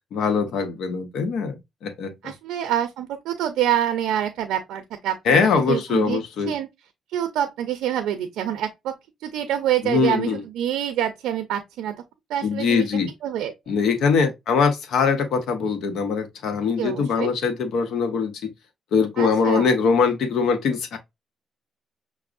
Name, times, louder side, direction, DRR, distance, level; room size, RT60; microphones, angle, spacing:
voice 1, 0.1-2.3 5.2-6.5 9.8-10.4 12.4-13.1 13.7-18.3 18.9-21.0, left 5 dB, 75° left, 0.7 m, -22 dB
voice 2, 2.2-5.4 5.7-6.7 7.1-8.9 9.2-11.9 12.3-12.9 13.2-13.5 16.8-17.3 19.2-19.7, right 11 dB, 90° right, 0.5 m, -26 dB
5.9 x 2.0 x 2.4 m
cardioid pair, 90°, 0 cm